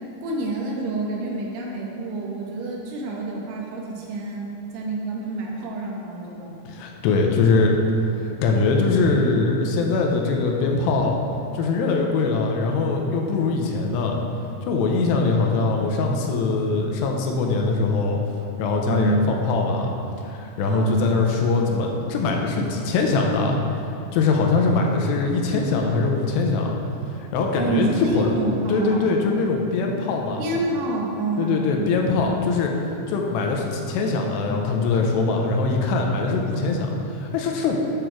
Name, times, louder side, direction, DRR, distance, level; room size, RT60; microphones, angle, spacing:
voice 1, 0.2-6.6 18.9-19.2 20.7-21.0 27.6-29.2 30.4-31.9, right 2 dB, 75° right, -2 dB, 2.9 m, -27 dB
voice 2, 6.7-7.7 8.2-11.1 11.5-14.1 14.6-18.2 18.6-19.9 20.3-23.6 24.1-26.7 27.1-28.3 28.7-30.4 31.4-32.7 33.1-37.8, left 3 dB, 85° left, 1 dB, 2.8 m, -22 dB
9.0 x 6.4 x 4.5 m, 2.8 s
omnidirectional pair, 5.0 m